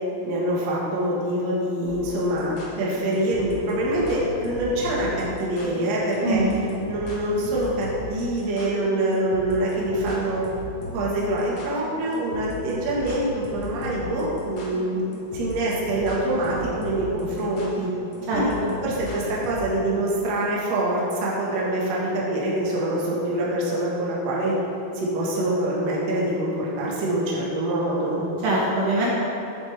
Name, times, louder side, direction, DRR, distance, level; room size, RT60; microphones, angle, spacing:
voice 1, 0.2-6.4 6.9-10.4 10.9-15.0 15.3-17.9 18.3-24.5 24.9-28.2, right 1 dB, 55° right, -5 dB, 2.2 m, -25 dB
sound 1, 1.9-19.6, left 1 dB, 55° left, 2.2 m, -37 dB
voice 2, 6.2-6.7 18.3-18.7 28.4-29.1, right 2 dB, 70° right, -5 dB, 2.6 m, -23 dB
11.0 x 7.3 x 3.4 m, 2.9 s
omnidirectional pair, 4.5 m